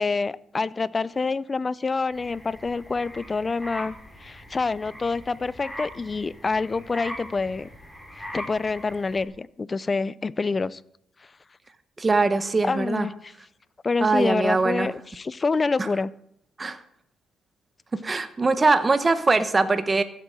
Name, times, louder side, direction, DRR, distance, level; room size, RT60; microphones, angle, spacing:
voice 1, 0.0-3.9 4.2-7.7 8.1-10.8 12.6-13.3 13.8-16.1, left 4 dB, 30° left, 0.5 m, -27 dB
sound 1, 2.1-9.2, left 1 dB, 5° left, 4.8 m, -41 dB
voice 2, 12.0-13.1 14.0-14.9 16.6-16.8 17.9-20.0, right 3 dB, 25° right, 1.0 m, -22 dB
15.0 x 8.3 x 6.4 m
cardioid pair, 90°, 0 cm